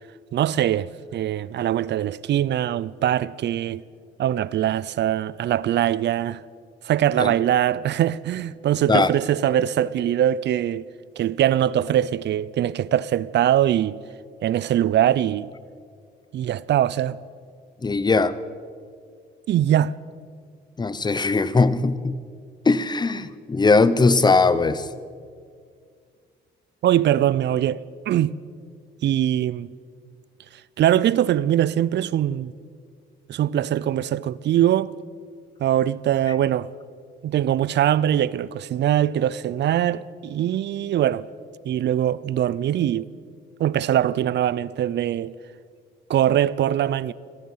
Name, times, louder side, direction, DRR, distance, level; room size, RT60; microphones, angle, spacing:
voice 1, 0.3-3.8 4.2-6.4 6.8-10.9 11.2-14.0 14.4-15.5 16.3-17.2 19.5-19.9 26.8-28.3 29.0-29.7 30.8-32.5 33.3-35.0 35.6-36.7 37.2-41.3 41.6-43.1 43.6-45.4 46.1-47.1, right 11 dB, 60° right, 0.5 m, -22 dB
voice 2, 17.8-18.3 20.8-22.2 22.7-24.8, left 3 dB, 20° left, 0.8 m, -19 dB
17.5 x 14.5 x 5.6 m
cardioid pair, 90°, 20 cm